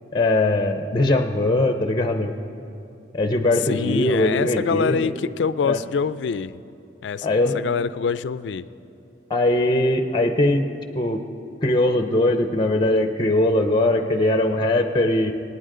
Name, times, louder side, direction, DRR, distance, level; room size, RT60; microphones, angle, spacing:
voice 1, 0.1-2.3 3.1-5.1 5.6-5.8 7.2-7.6 9.3-10.6 11.0-11.2 11.6-15.3, left 1 dB, 25° left, 7 dB, 0.5 m, -20 dB
voice 2, 3.7-6.6 7.0-7.3 7.5-8.7, left 6 dB, 80° left, 16 dB, 0.4 m, -25 dB
25.0 x 9.6 x 3.8 m, 2.7 s
head